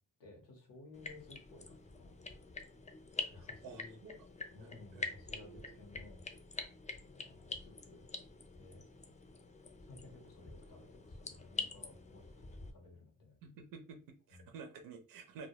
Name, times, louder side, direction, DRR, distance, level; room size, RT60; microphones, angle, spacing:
voice 1, 0.2-2.2 3.3-4.0 4.5-6.3 7.2-8.1 8.6-8.9 9.8-12.3 12.6-13.4 14.3-14.5, left 3 dB, 85° left, 1 dB, 0.8 m, -56 dB
sound 1, 0.9-12.7, left 3 dB, 20° left, 0.4 m, -46 dB
voice 2, 3.3-4.1 4.5-5.8 11.6-11.7 13.4-15.5, right 5 dB, 85° right, 5 dB, 0.5 m, -52 dB
2.1 x 2.0 x 2.8 m, 0.36 s
cardioid pair, 60°, 33 cm